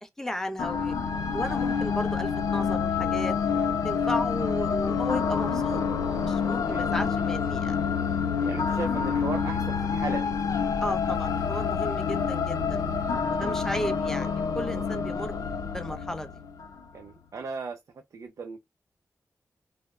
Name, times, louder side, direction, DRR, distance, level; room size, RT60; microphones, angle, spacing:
voice 1, 0.0-0.9 1.3-7.8 10.8-12.8 13.3-15.4 15.7-16.3, equal, 5° left, 0.5 m, -34 dB
sound 1, 0.6-16.8, left 6 dB, 80° left, 0.4 m, -27 dB
voice 2, 8.4-10.4 13.4-13.6 16.9-17.8 18.1-18.6, right 4 dB, 60° right, 0.4 m, -36 dB
2.1 x 2.0 x 3.4 m
wide cardioid pair, 120°, 6 cm